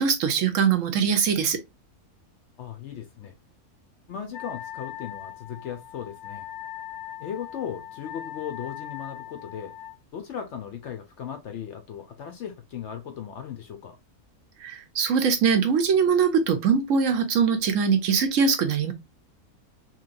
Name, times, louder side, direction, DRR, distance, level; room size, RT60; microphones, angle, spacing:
voice 1, 0.0-1.6 14.6-18.9, right 6 dB, 70° right, 0.9 m, -22 dB
voice 2, 2.6-3.3 4.1-6.5 7.2-9.7 10.1-14.0, left 8 dB, 65° left, 0.8 m, -37 dB
Wind instrument woodwind instrument, 4.3-10.0, left 12 dB, 85° left, 1.1 m, -40 dB
3.1 x 2.8 x 2.4 m
omnidirectional pair, 1.5 m